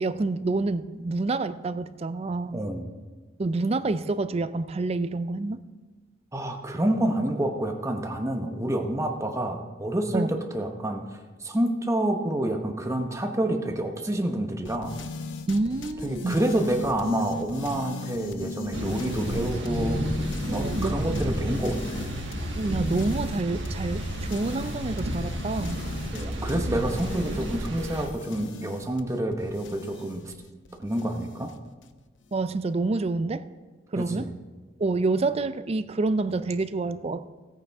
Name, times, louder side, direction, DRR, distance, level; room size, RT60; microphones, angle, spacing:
voice 1, 0.0-2.6 3.4-5.6 10.1-10.3 15.5-16.4 20.5-21.0 22.6-25.8 32.3-33.4 33.9-34.3 34.8-37.3, right 3 dB, 35° right, 13 dB, 0.4 m, -27 dB
voice 2, 2.5-2.9 6.3-11.0 11.4-15.0 16.0-20.0 20.5-22.1 26.1-30.3 30.8-31.5 34.0-34.3, right 1 dB, 15° right, 4 dB, 1.0 m, -28 dB
sound 1, 14.7-31.9, left 3 dB, 80° left, 0.7 m, -37 dB
sound 2, 18.7-28.1, right 1 dB, 70° right, 1.4 m, -32 dB
16.5 x 8.8 x 3.5 m, 1.3 s
head